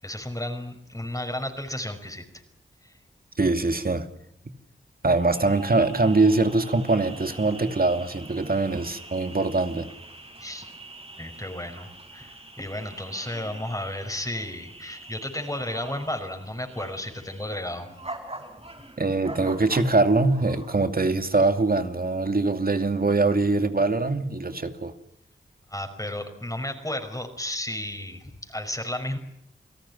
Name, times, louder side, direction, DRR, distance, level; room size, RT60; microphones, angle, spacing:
voice 1, 0.0-2.3 2.8-2.9 10.4-10.7 11.2-17.9 25.7-29.2, left 1 dB, 15° left, 5.5 m, -33 dB
voice 2, 3.4-4.1 5.0-9.9 19.0-24.9, right 3 dB, 45° right, 2.6 m, -23 dB
sound 1, 5.2-20.8, right 2 dB, 30° right, 5.9 m, -44 dB
29.5 x 17.5 x 9.8 m
cardioid pair, 40°, 20 cm